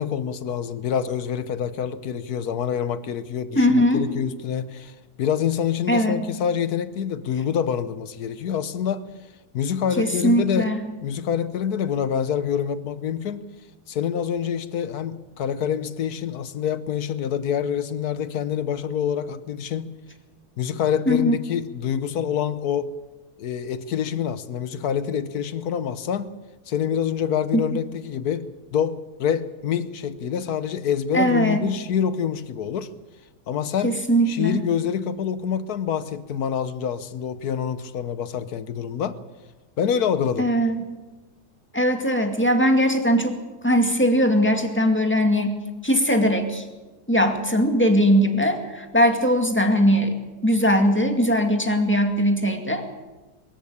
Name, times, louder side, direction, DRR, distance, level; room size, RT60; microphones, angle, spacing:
voice 1, 0.0-9.0 9.5-10.7 11.0-13.4 13.9-19.9 20.6-22.9 23.4-26.3 26.7-28.5 28.7-32.9 33.5-34.0 34.3-39.2 39.8-40.5, left 8 dB, 70° left, 14 dB, 1.4 m, -26 dB
voice 2, 3.6-4.0 5.9-6.2 10.0-10.8 21.1-21.3 31.1-31.6 33.8-34.6 40.4-40.8 41.7-43.4 43.6-45.6 45.8-46.6 47.1-50.1 50.4-52.9, equal, 5° left, 4 dB, 2.1 m, -20 dB
23.0 x 14.0 x 8.6 m, 1.2 s
omnidirectional pair, 1.7 m